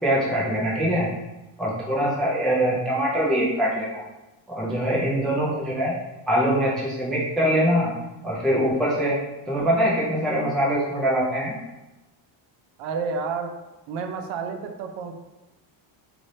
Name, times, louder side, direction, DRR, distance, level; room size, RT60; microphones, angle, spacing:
voice 1, 0.0-1.1 1.6-4.0 4.5-5.9 6.3-7.9 8.2-9.2 9.5-11.6, equal, ahead, -6 dB, 0.3 m, -23 dB
voice 2, 12.8-13.6 13.9-15.1, right 5 dB, 75° right, 5 dB, 0.6 m, -30 dB
3.1 x 2.6 x 4.1 m, 1.0 s
cardioid pair, 170°, 48 cm